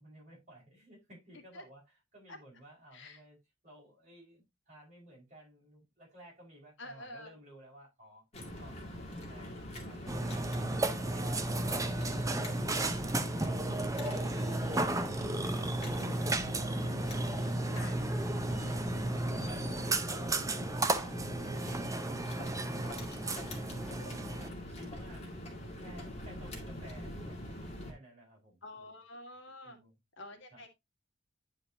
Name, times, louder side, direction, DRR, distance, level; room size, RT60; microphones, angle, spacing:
voice 1, 0.0-1.8 2.1-3.4 3.6-8.2 8.6-10.8 11.1-13.0 13.3-13.8 14.1-14.3 15.5-20.8 21.2-23.8 24.2-25.3 25.8-27.4 27.9-29.0 29.6-29.9 30.5-30.6, right 1 dB, 40° right, 5.1 m, -55 dB
voice 2, 6.8-7.3 14.1-14.8 17.7-18.0 24.0-24.1 28.6-29.8 30.2-30.7, left 1 dB, 65° left, 1.7 m, -48 dB
sound 1, 8.3-27.9, left 1 dB, 35° left, 2.2 m, -43 dB
Burping eructation, 10.1-24.5, right 2 dB, 15° right, 0.6 m, -34 dB
10.0 x 4.9 x 2.8 m
head